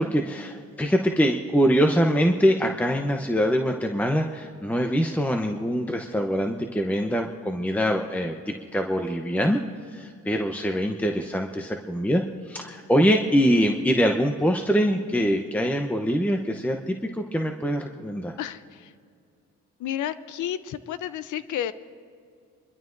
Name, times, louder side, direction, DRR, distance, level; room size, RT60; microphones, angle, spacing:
voice 1, 0.0-9.6 9.9-18.3, equal, 5° left, 3 dB, 0.8 m, -24 dB
voice 2, 18.4-18.9 19.8-21.7, left 11 dB, 75° left, 14 dB, 0.7 m, -31 dB
26.5 x 12.5 x 2.6 m, 2.3 s
cardioid pair, 90°, 30 cm